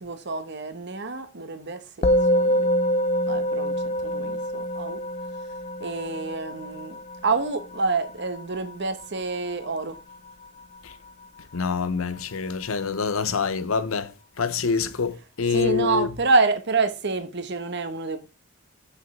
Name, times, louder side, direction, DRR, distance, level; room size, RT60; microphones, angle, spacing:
voice 1, 0.0-2.1 2.3-2.7 3.3-5.0 5.8-10.0 15.5-18.2, right 3 dB, 55° right, 1.2 m, -27 dB
Musical instrument, 2.0-11.6, equal, 30° left, 0.6 m, -27 dB
voice 2, 11.5-16.1, left 5 dB, 85° left, 0.8 m, -26 dB
6.4 x 5.2 x 6.0 m
head